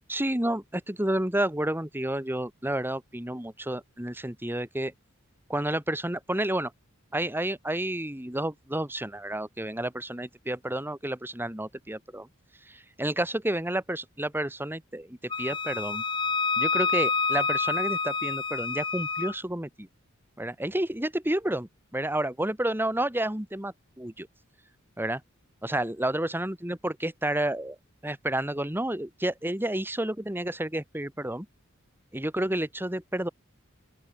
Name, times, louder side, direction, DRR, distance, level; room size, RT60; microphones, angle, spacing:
voice 1, 0.1-4.9 5.5-6.7 7.1-12.3 12.7-16.0 16.6-19.9 20.4-24.3 25.0-25.2 25.6-27.8 28.0-31.5 32.1-33.3, right 1 dB, 10° right, 2.3 m, -30 dB
Wind instrument woodwind instrument, 15.3-19.3, left 4 dB, 25° left, 1.5 m, -28 dB
open air
head